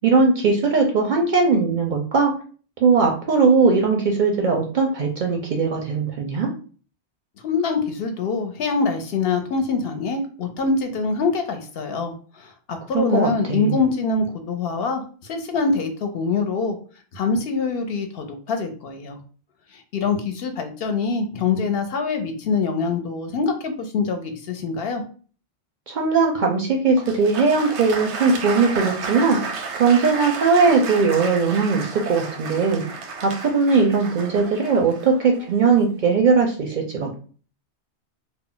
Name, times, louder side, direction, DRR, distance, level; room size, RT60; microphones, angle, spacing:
voice 1, 0.0-2.3 2.8-6.5 12.9-13.8 25.9-29.4 29.8-32.8 33.2-37.2, right 4 dB, 60° right, 1 dB, 0.5 m, -19 dB
voice 2, 7.4-16.8 17.1-19.2 19.7-25.0, left 4 dB, 65° left, 5 dB, 0.7 m, -24 dB
Applause, 27.0-35.9, right 4 dB, 85° right, 0.9 m, -32 dB
2.3 x 2.0 x 3.7 m, 0.40 s
omnidirectional pair, 1.1 m